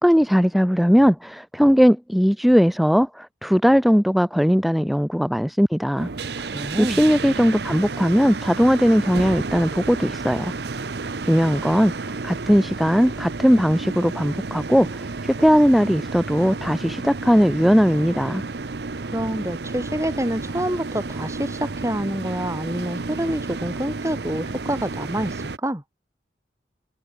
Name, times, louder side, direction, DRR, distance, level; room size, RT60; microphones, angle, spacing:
voice 1, 0.0-6.1 6.8-10.5 11.2-18.4, equal, ahead, 1.1 m, -19 dB
sound 1, 6.0-25.6, right 3 dB, 65° right, 0.8 m, -31 dB
voice 2, 6.4-7.0 19.1-25.8, right 1 dB, 15° right, 2.3 m, -27 dB
open air
head